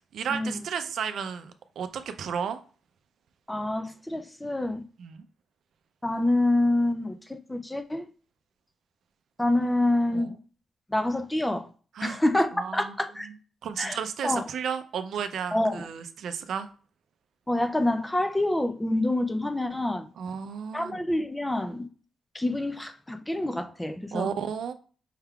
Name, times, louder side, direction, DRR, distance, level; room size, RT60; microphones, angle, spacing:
voice 1, 0.1-2.6 5.0-5.2 10.1-10.3 12.0-12.2 12.6-12.9 13.2-13.3 13.6-16.7 20.2-21.0 24.1-24.7, right 7 dB, 65° right, 0.4 m, -33 dB
voice 2, 3.5-4.8 6.0-8.0 9.4-10.3 10.9-11.7 12.0-13.3 13.8-14.0 14.2-14.4 15.5-15.9 17.5-20.1 20.7-21.9 22.3-24.3, left 1 dB, 5° left, 0.4 m, -27 dB
5.6 x 3.5 x 2.3 m
wide cardioid pair, 170°, 0 cm